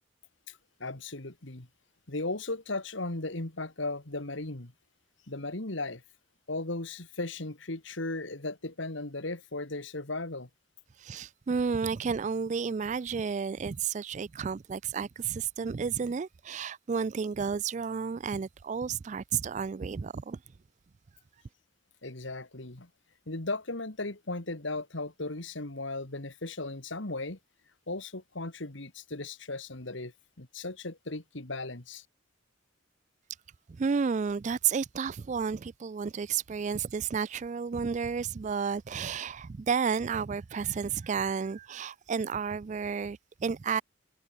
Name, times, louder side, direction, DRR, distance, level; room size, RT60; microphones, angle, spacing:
voice 1, 0.5-1.7 2.1-4.7 5.3-6.0 6.5-10.5 22.0-22.9 23.3-27.4 27.9-30.1 30.4-32.0, left 2 dB, 65° left, 2.1 m, -36 dB
voice 2, 11.0-20.4 33.8-43.8, right 6 dB, 35° right, 0.3 m, -31 dB
head